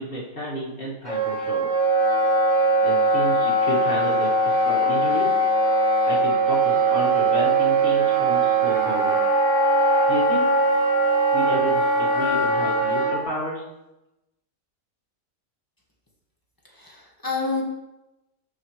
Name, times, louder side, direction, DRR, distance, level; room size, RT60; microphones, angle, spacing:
voice 1, 0.0-1.7 2.8-5.3 6.0-9.2 10.1-10.7 11.3-13.6, left 1 dB, 40° left, -6 dB, 2.3 m, -31 dB
Wind instrument woodwind instrument, 1.1-13.1, right 2 dB, 30° right, 2.5 m, -20 dB
voice 2, 16.6-17.6, left 4 dB, 15° left, -2 dB, 1.5 m, -28 dB
13.5 x 5.6 x 3.2 m, 0.96 s
omnidirectional pair, 1.5 m